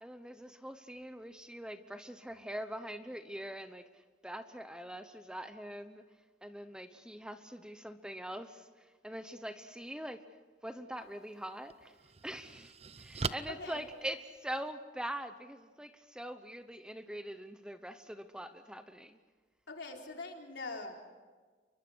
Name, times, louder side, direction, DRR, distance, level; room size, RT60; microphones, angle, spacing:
voice 1, 0.0-6.0 6.4-10.2 10.6-12.0 12.2-19.2, right 1 dB, 5° right, 9 dB, 0.9 m, -43 dB
sound 1, 11.0-11.1 11.7-14.7, right 4 dB, 35° right, 0.7 m, -41 dB
voice 2, 13.5-13.9 19.7-20.9, left 3 dB, 70° left, 1 dB, 4.1 m, -43 dB
29.5 x 23.5 x 6.3 m, 1.4 s
head